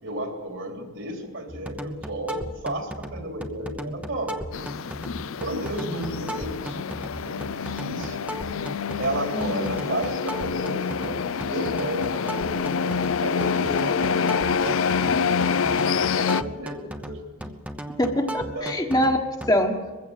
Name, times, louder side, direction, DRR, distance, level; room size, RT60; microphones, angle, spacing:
voice 1, 0.0-4.4 5.4-6.9 7.2-8.3 9.0-17.2 18.5-18.8, right 1 dB, 65° right, 3 dB, 3.4 m, -33 dB
sound 1, 1.5-19.6, equal, 5° right, 0.9 m, -37 dB
sound 2, 4.5-16.4, left 6 dB, 70° left, 0.5 m, -27 dB
voice 2, 9.3-9.6 18.0-19.2 19.5-19.8, equal, 20° left, 3 dB, 1.4 m, -24 dB
22.0 x 15.5 x 7.6 m, 1.4 s
head